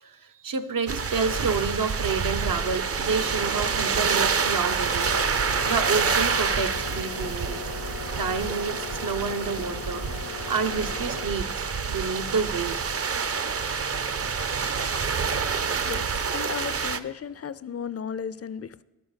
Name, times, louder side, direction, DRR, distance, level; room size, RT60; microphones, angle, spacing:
voice 1, 0.4-5.1 5.5-7.7 8.2-13.0, right 5 dB, 75° right, 0.8 m, -29 dB
sound 1, 0.9-17.0, right 5 dB, 45° right, 0.5 m, -27 dB
sound 2, 4.9-11.3, left 7 dB, 90° left, 0.8 m, -39 dB
voice 2, 15.8-18.8, left 7 dB, 45° left, 0.4 m, -35 dB
11.5 x 5.2 x 8.0 m
wide cardioid pair, 80°, 34 cm